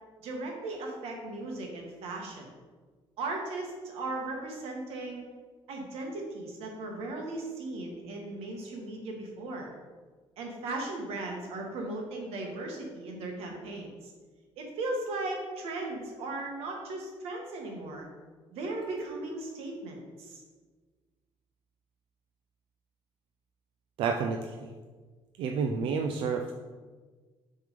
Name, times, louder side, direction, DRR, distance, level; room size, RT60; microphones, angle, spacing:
voice 1, 0.2-2.5 3.2-5.2 5.7-9.7 10.4-14.1 14.6-18.1 18.5-20.4, right 2 dB, 90° right, 1 dB, 1.5 m, -37 dB
voice 2, 24.0-24.7 25.4-26.5, right 5 dB, 60° right, 4 dB, 0.4 m, -30 dB
6.7 x 3.6 x 5.0 m, 1.4 s
cardioid pair, 170°, 10 cm